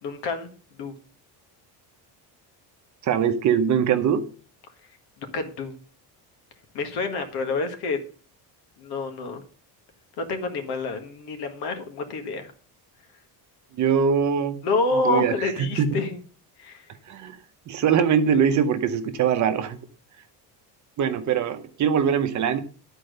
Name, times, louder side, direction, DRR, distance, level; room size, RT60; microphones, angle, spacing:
voice 1, 0.0-0.5 0.8-0.9 5.3-5.7 6.7-8.0 8.8-9.4 10.2-12.5 14.6-16.2 16.6-16.8, left 3 dB, 65° left, 6 dB, 1.8 m, -28 dB
voice 2, 3.0-4.2 13.8-14.6 14.9-15.9 17.1-17.4 17.7-19.8 21.0-22.6, right 7 dB, 40° right, 8 dB, 0.9 m, -22 dB
11.0 x 4.5 x 6.5 m, 0.41 s
cardioid pair, 175°, 43 cm